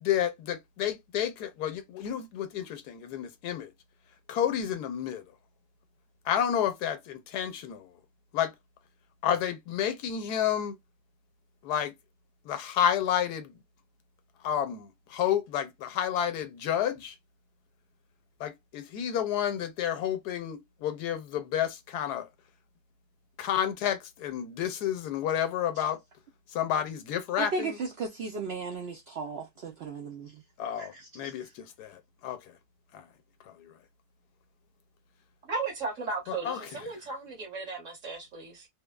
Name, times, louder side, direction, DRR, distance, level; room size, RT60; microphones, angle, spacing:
voice 1, 0.0-3.7 4.3-5.2 6.3-7.9 8.3-8.5 9.2-10.7 11.6-11.9 12.5-13.6 14.4-17.1 18.4-22.3 23.4-26.0 26.5-27.7 30.6-32.4 32.9-33.0 33.6-33.7 36.4-36.6, left 9 dB, 80° left, 1.2 m, -30 dB
voice 2, 27.4-30.4 30.8-31.5, right 4 dB, 85° right, 0.5 m, -36 dB
voice 3, 35.5-38.7, right 4 dB, 55° right, 1.5 m, -35 dB
3.2 x 2.0 x 2.2 m
omnidirectional pair, 1.7 m